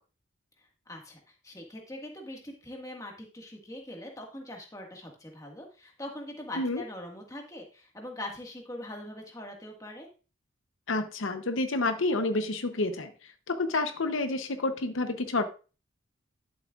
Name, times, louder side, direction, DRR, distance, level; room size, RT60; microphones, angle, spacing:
voice 1, 0.6-10.1, left 1 dB, 15° left, 1 dB, 1.7 m, -42 dB
voice 2, 10.9-15.4, left 2 dB, 80° left, 9 dB, 0.8 m, -29 dB
11.5 x 7.5 x 2.4 m, 0.34 s
head